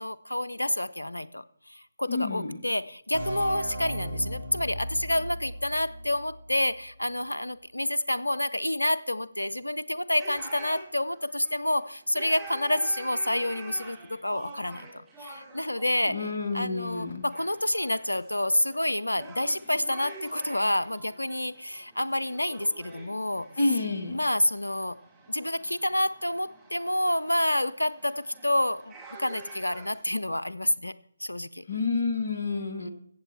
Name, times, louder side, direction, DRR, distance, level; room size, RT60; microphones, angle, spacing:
voice 1, 0.0-23.5 24.1-25.0 25.3-30.9 31.2-31.6 32.8-32.9, left 1 dB, 80° left, 0.6 m, -28 dB
voice 2, 2.1-2.6 16.1-17.3 23.6-24.2 31.7-32.9, left 3 dB, 50° left, 1.6 m, -29 dB
sound 1, 3.1-6.7, equal, 65° right, 2.4 m, -37 dB
sound 2, 10.2-30.0, right 2 dB, 10° right, 2.5 m, -48 dB
14.5 x 7.9 x 4.2 m
figure-of-eight pair, 145°, 0 cm